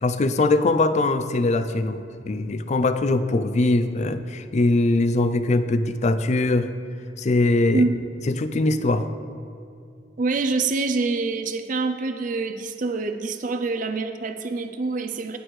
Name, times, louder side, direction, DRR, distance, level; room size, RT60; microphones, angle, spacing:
voice 1, 0.0-6.7 7.2-7.9 8.3-9.1, left 2 dB, 40° left, 11 dB, 0.4 m, -21 dB
voice 2, 10.2-15.4, right 3 dB, 45° right, 7 dB, 0.5 m, -25 dB
18.5 x 6.2 x 3.2 m, 2.5 s
head